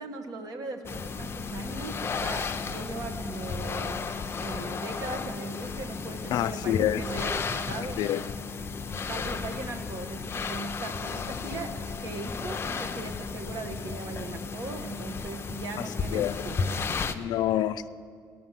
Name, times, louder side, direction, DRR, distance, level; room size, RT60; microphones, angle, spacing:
voice 1, 0.0-8.2 8.9-11.7 12.0-17.4, right 3 dB, 65° right, 5 dB, 1.4 m, -39 dB
sound 1, 0.8-17.1, left 5 dB, 35° left, 0.6 m, -34 dB
voice 2, 6.3-7.0 7.7-8.2 15.8-16.4 17.1-17.9, left 12 dB, 75° left, 15 dB, 0.4 m, -28 dB
17.0 x 6.3 x 7.4 m, 2.2 s
cardioid pair, 100°, 7 cm